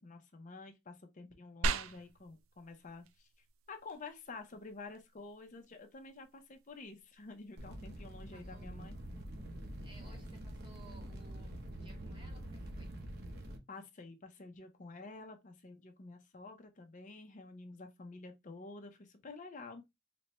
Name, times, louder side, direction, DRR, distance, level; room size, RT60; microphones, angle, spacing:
voice 1, 0.0-3.3 3.7-8.9 10.0-10.2 13.7-19.8, left 3 dB, 35° left, 0.6 m, -50 dB
sound 1, 1.6-11.6, right 3 dB, 75° right, 0.3 m, -45 dB
sound 2, 7.6-13.6, right 1 dB, 50° right, 0.7 m, -46 dB
voice 2, 8.3-8.7 9.8-12.9, right 2 dB, 25° right, 1.0 m, -60 dB
4.1 x 2.1 x 3.0 m
head